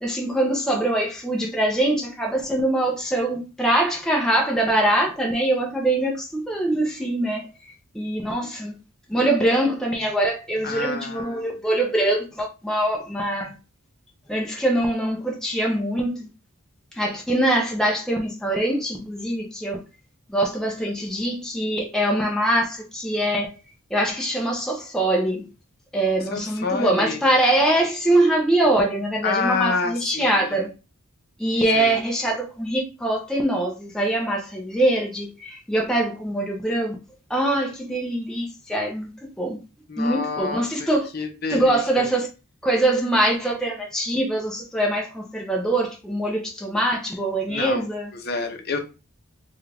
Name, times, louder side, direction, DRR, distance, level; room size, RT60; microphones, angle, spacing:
voice 1, 0.0-7.5 7.9-8.8 9.1-13.6 14.3-16.3 16.9-19.8 20.3-23.6 23.9-25.5 25.9-30.7 31.4-37.0 37.3-39.1 39.4-39.6 40.0-41.1 41.5-42.3 42.6-48.1, right 1 dB, 5° left, 0.5 m, -23 dB
voice 2, 10.6-11.6 26.3-27.3 29.2-30.6 31.7-32.0 39.9-40.9 41.1-42.1 47.5-47.8 48.1-48.8, left 4 dB, 45° left, 0.7 m, -28 dB
3.6 x 2.3 x 3.3 m
head